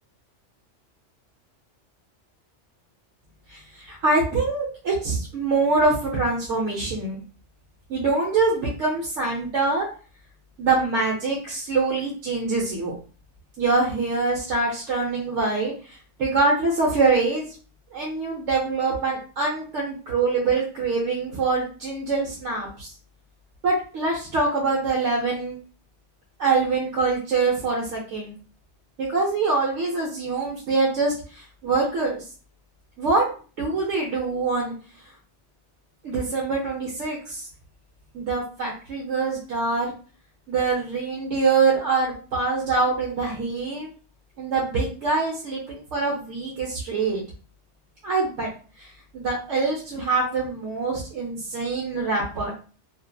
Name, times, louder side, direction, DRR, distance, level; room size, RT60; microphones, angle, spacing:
voice 1, 3.5-7.2 7.9-9.9 10.6-13.0 13.6-17.5 17.9-22.9 23.6-25.6 26.4-28.3 29.0-32.2 33.0-34.7 36.0-37.5 38.1-39.9 40.5-43.9 44.4-47.2 48.0-48.5 48.8-52.5, right 3 dB, 85° right, -3 dB, 1.1 m, -24 dB
2.7 x 2.4 x 2.2 m, 0.38 s
omnidirectional pair, 1.2 m